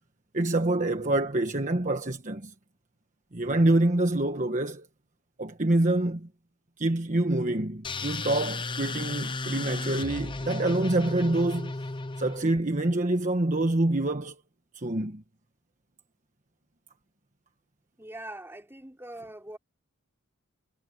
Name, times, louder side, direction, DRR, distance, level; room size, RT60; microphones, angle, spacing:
voice 1, 0.3-2.5 3.3-4.9 5.4-6.3 6.8-11.7 12.2-14.4 14.7-15.2, right 2 dB, 35° right, 1.3 m, -26 dB
sound 1, 7.8-12.6, left 3 dB, 20° left, 0.7 m, -34 dB
voice 2, 18.0-19.6, right 1 dB, 10° right, 3.8 m, -42 dB
head